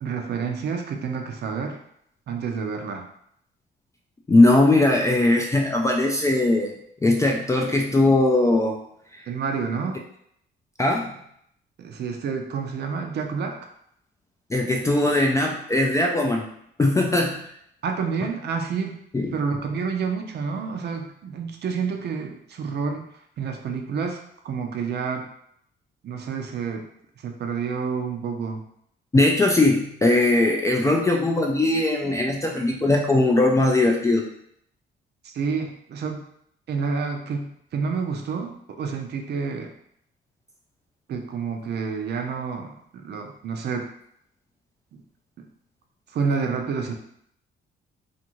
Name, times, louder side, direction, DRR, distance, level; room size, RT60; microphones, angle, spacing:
voice 1, 0.0-1.8 2.3-3.1 9.3-10.0 11.8-13.6 17.8-19.0 19.3-23.1 23.4-25.3 26.0-26.8 27.2-28.6 35.2-36.2 36.7-39.7 41.1-43.9 44.9-45.0 45.4-45.5 46.1-47.0, right 5 dB, 55° right, 3 dB, 0.5 m, -29 dB
voice 2, 4.3-6.7 7.0-8.8 9.1-9.3 10.8-11.1 14.5-16.5 16.8-17.5 19.1-19.3 29.1-34.2, left 2 dB, 15° left, 0 dB, 0.3 m, -20 dB
2.5 x 2.5 x 2.9 m, 0.71 s
cardioid pair, 90°, 20 cm